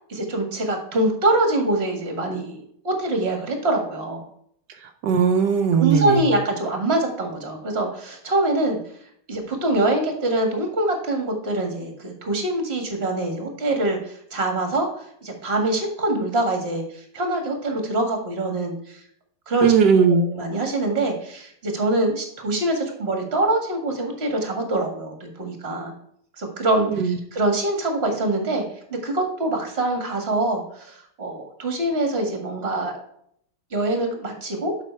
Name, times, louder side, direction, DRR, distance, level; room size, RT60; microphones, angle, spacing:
voice 1, 0.1-4.3 5.8-8.8 9.3-19.0 19.5-19.7 20.1-25.9 26.4-28.7 29.0-33.0 33.7-34.7, right 2 dB, 40° right, 3 dB, 2.0 m, -24 dB
voice 2, 5.0-6.2 19.6-20.3 26.9-27.2, right 6 dB, 85° right, 5 dB, 1.3 m, -18 dB
7.5 x 5.6 x 4.5 m, 0.68 s
omnidirectional pair, 1.8 m